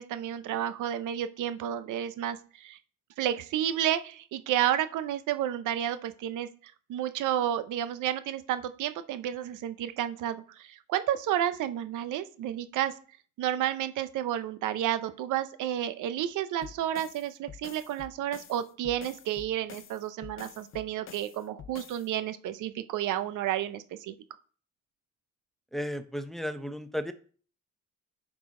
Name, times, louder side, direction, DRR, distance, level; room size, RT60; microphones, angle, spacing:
voice 1, 0.0-2.8 3.2-12.9 13.4-24.2, right 11 dB, 85° right, 12 dB, 0.7 m, -31 dB
sound 1, 16.6-22.1, left 8 dB, 45° left, 0.6 m, -48 dB
voice 2, 25.7-27.1, equal, ahead, 9 dB, 0.7 m, -34 dB
9.3 x 4.9 x 3.7 m, 0.43 s
cardioid pair, 90°, 30 cm